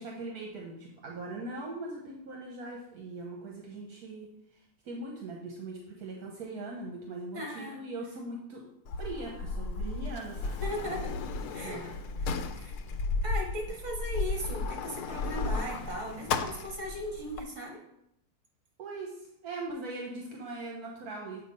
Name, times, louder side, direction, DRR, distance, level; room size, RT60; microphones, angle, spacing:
voice 1, 0.0-8.6 9.0-10.6 11.6-12.0 18.8-21.4, right 2 dB, 80° right, -1 dB, 1.4 m, -40 dB
voice 2, 7.3-7.8 10.6-11.1 11.5-11.8 12.2-12.8 13.2-17.8, equal, 50° right, -1 dB, 2.0 m, -38 dB
Sliding door, 8.9-17.4, left 3 dB, 90° left, 1.1 m, -34 dB
8.0 x 2.7 x 5.2 m, 0.78 s
omnidirectional pair, 1.6 m